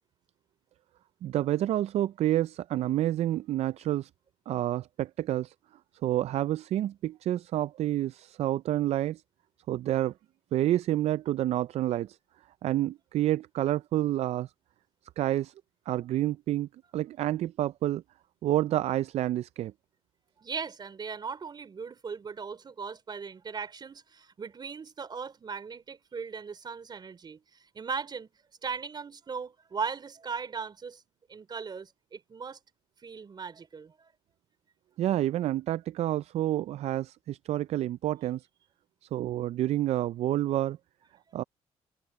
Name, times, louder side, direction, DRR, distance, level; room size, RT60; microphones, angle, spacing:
voice 1, 1.2-4.1 4.5-5.5 6.0-9.2 9.7-10.1 10.5-12.2 12.6-14.5 15.2-15.5 15.9-18.0 18.4-19.7 35.0-38.4 39.1-40.8 41.3-41.4, right 13 dB, 65° right, 0.4 m, -29 dB
voice 2, 20.4-28.3 28.6-31.0 31.3-32.6 33.0-34.1 41.3-41.4, right 5 dB, 40° right, 4.1 m, -38 dB
cardioid pair, 95°, 12 cm